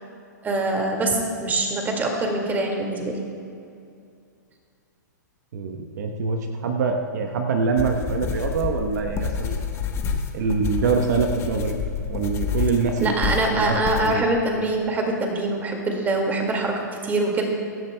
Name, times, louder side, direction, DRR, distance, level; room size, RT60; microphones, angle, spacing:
voice 1, 0.4-3.2 13.0-17.4, right 2 dB, 20° right, 1 dB, 2.1 m, -24 dB
voice 2, 5.5-9.6 10.3-11.7 12.1-14.2, right 4 dB, 65° right, 4 dB, 1.0 m, -24 dB
sound 1, 7.8-14.1, left 6 dB, 25° left, 1.2 m, -28 dB
24.0 x 10.5 x 2.2 m, 2.4 s
hypercardioid pair, 120°, 10 cm